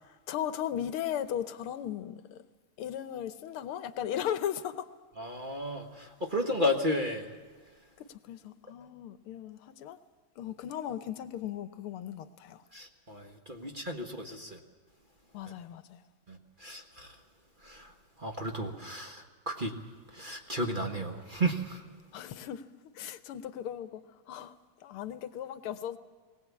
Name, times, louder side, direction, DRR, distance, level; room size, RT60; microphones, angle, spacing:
voice 1, 0.1-2.4 2.8-4.9 8.0-10.0 10.4-12.6 13.6-13.7 15.3-16.0 22.1-22.7 22.9-26.0, left 10 dB, 85° left, 1.8 m, -37 dB
voice 2, 5.2-7.3 12.7-14.6 16.3-17.2 17.6-19.7 20.1-21.8, equal, 25° right, 1.5 m, -33 dB
20.0 x 18.0 x 8.4 m
omnidirectional pair, 2.3 m